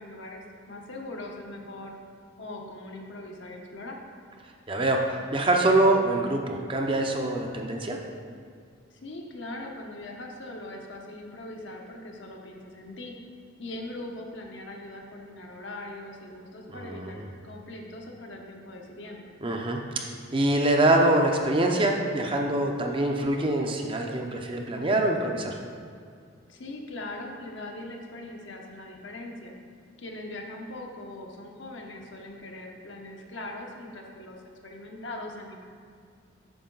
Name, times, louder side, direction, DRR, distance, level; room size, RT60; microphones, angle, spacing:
voice 1, 0.0-2.0 2.4-4.0 8.9-13.2 13.6-19.3 26.5-29.5 30.0-34.4 34.6-35.6, left 1 dB, 65° left, 1 dB, 1.0 m, -41 dB
voice 2, 4.7-8.0 16.7-17.2 19.4-20.1 20.3-25.6, right 1 dB, 25° right, 2 dB, 0.6 m, -24 dB
8.6 x 6.2 x 3.9 m, 2.1 s
head